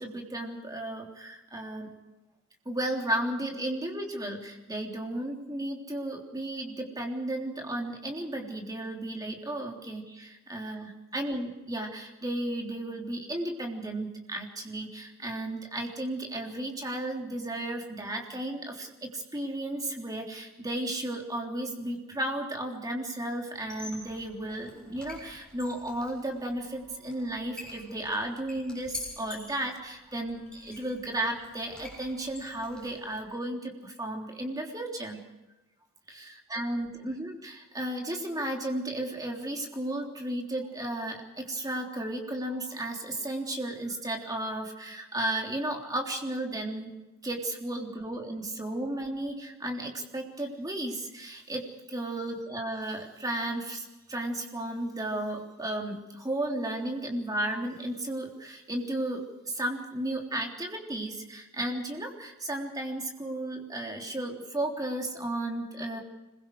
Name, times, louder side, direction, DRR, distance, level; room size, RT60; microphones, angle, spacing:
voice 1, 0.0-1.9 2.7-35.2 36.1-36.3 36.5-46.9 47.2-66.0, right 1 dB, 20° right, 1 dB, 3.3 m, -34 dB
Squeak, 23.6-33.2, left 2 dB, 5° left, 7.1 m, -47 dB
26.0 x 22.0 x 4.8 m, 1.0 s
head